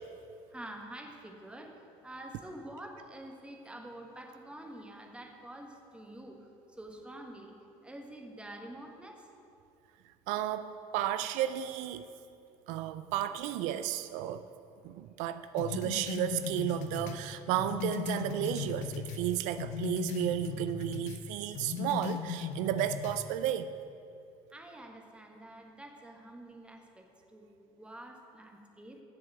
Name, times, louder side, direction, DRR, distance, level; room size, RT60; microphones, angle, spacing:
voice 1, 0.5-7.6 7.8-9.3 24.5-29.0, right 1 dB, 10° right, 2 dB, 1.3 m, -47 dB
voice 2, 10.3-12.0 12.7-14.5 14.8-23.7, right 11 dB, 80° right, 11 dB, 0.4 m, -33 dB
sound 1, 15.6-19.3 19.6-21.2 21.5-23.2, left 7 dB, 70° left, 0.8 m, -37 dB
7.7 x 6.8 x 8.1 m, 2.6 s
supercardioid pair, 105°, 13 cm